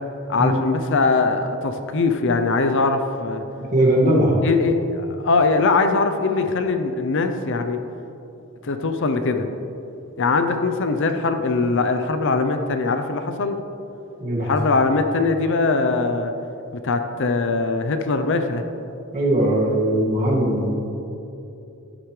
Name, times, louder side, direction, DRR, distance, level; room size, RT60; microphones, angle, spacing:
voice 1, 0.3-3.4 4.4-7.8 8.6-9.5 10.2-13.6 14.4-16.3 16.8-18.6, left 3 dB, 60° left, 7 dB, 0.6 m, -21 dB
voice 2, 3.7-4.4 14.2-14.5 19.1-20.7, right 1 dB, 35° right, -4 dB, 1.9 m, -19 dB
11.0 x 10.0 x 3.2 m, 2.9 s
head